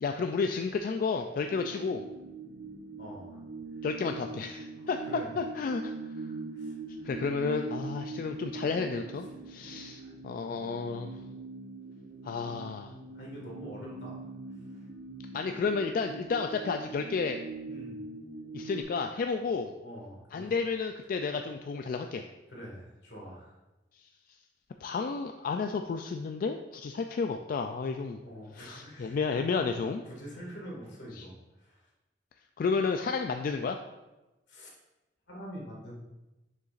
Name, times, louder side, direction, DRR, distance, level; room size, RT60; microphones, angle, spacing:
voice 1, 0.0-2.0 3.8-5.0 5.4-5.9 7.0-11.1 12.2-12.9 15.3-17.4 18.5-19.7 20.3-22.2 24.8-28.2 28.6-30.0 31.2-31.3 32.6-33.8, left 4 dB, 50° left, 5 dB, 0.3 m, -31 dB
sound 1, 1.4-18.8, right 3 dB, 80° right, 0.9 m, -42 dB
voice 2, 3.0-3.4 4.8-5.3 6.5-7.2 10.0-10.1 13.1-14.3 14.7-14.9 15.4-15.5 17.7-18.0 19.4-19.5 19.8-20.5 22.5-23.6 28.2-29.2 29.7-29.8 30.1-31.9 34.5-34.8 35.3-36.0, equal, 80° left, -3 dB, 2.0 m, -45 dB
6.9 x 6.6 x 2.5 m, 1.0 s
head